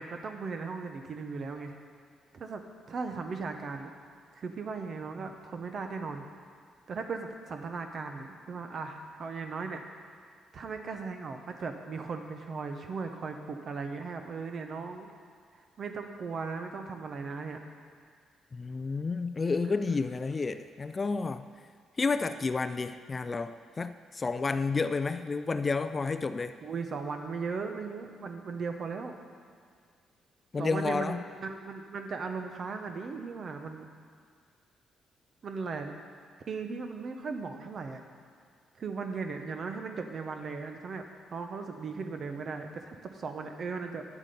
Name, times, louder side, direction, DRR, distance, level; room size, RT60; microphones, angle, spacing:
voice 1, 0.0-1.8 2.3-3.9 4.3-6.3 6.9-10.2 10.5-15.1 15.5-17.6 26.6-29.2 30.6-33.9 35.4-35.9 36.5-38.0 38.8-44.1, right 4 dB, 55° right, 5 dB, 1.0 m, -37 dB
voice 2, 18.5-21.5 22.0-26.5 30.5-31.2, left 4 dB, 35° left, 11 dB, 0.4 m, -30 dB
9.7 x 7.3 x 5.3 m, 2.1 s
supercardioid pair, 70°, 0 cm